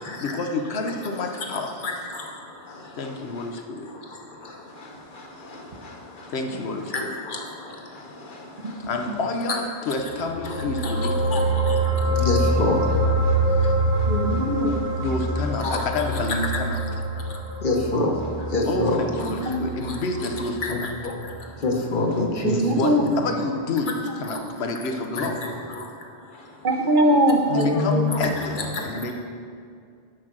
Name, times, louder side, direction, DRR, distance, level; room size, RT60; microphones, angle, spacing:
voice 1, 0.2-1.7 3.0-3.9 6.3-7.1 8.9-11.4 15.0-16.8 18.7-20.9 22.7-22.9 23.2-25.4 27.5-28.6 28.8-29.1, left 3 dB, 90° left, 4 dB, 1.0 m, -28 dB
voice 2, 8.6-9.1 14.1-14.8 18.5-18.6 19.3-19.6 22.4-23.0 26.6-28.1, right 1 dB, 55° right, 3 dB, 0.9 m, -22 dB
sound 1, 10.2-20.9 21.2-21.4, right 1 dB, 85° right, 1.8 m, -25 dB
voice 3, 10.8-11.4 12.2-12.8 15.6-15.8 17.6-18.1 18.5-19.0 20.6-20.8 21.0-21.1 21.6-22.6 24.3-24.4 25.2-25.3 27.8-28.3 28.6-28.8, left 2 dB, 55° left, 1 dB, 1.1 m, -24 dB
6.4 x 6.3 x 6.0 m, 2.3 s
omnidirectional pair, 1.0 m